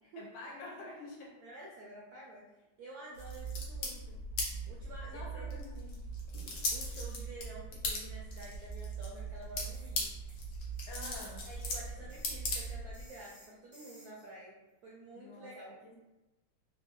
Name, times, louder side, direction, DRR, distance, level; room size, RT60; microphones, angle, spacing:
voice 1, 0.2-1.4 5.0-6.1 10.9-11.5 15.1-15.5 15.8-16.0, left 2 dB, 85° left, -2 dB, 1.6 m, -48 dB
voice 2, 1.4-2.4 2.8-4.2 4.7-5.7 6.7-10.1 11.4-14.5 14.8-15.8, right 1 dB, 75° right, -5 dB, 0.8 m, -50 dB
sound 1, 3.1-13.1, equal, 65° left, 1.2 m, -39 dB
sound 2, 9.7-10.0 10.3-14.3, right 1 dB, 15° right, 0.4 m, -60 dB
3.7 x 2.2 x 2.9 m, 1.0 s
omnidirectional pair, 2.3 m